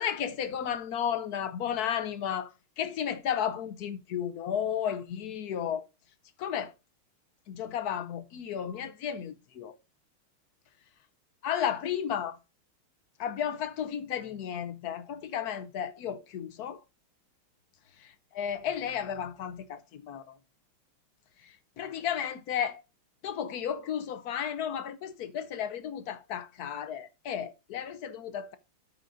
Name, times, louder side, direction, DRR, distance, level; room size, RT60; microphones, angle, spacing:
voice 1, 0.0-5.9 6.4-6.7 7.5-9.8 11.4-12.4 13.2-16.8 18.4-20.4 21.4-22.8 23.2-28.6, left 9 dB, 65° left, 0.9 m, -33 dB
13.0 x 5.1 x 2.5 m
omnidirectional pair, 2.3 m